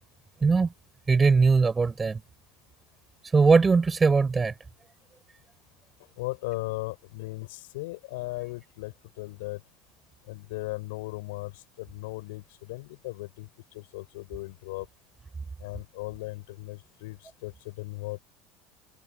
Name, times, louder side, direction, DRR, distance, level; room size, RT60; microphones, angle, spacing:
voice 1, 0.4-0.7 1.1-2.2 3.3-4.5, right 4 dB, 20° right, 6.5 m, -20 dB
voice 2, 6.2-9.6 10.3-13.5 13.7-14.9 15.6-18.2, left 22 dB, 70° left, 6.5 m, -37 dB
hypercardioid pair, 75°, 0 cm